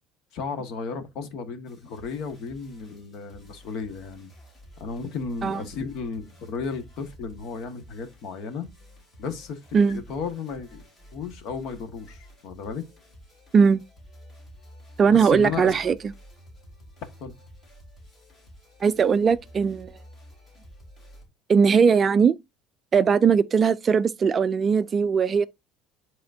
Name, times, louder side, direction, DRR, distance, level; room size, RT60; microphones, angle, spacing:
voice 1, 0.3-4.3 4.8-8.7 9.2-10.8 11.1-12.8 15.1-15.7 17.2-17.3, left 5 dB, 55° left, 1.6 m, -34 dB
sound 1, 1.6-21.3, equal, 25° left, 3.9 m, -50 dB
voice 2, 15.0-16.0 18.8-20.0 21.5-22.4 22.9-25.5, right 6 dB, 25° right, 0.3 m, -19 dB
10.5 x 4.2 x 2.7 m
cardioid pair, 150°, 0 cm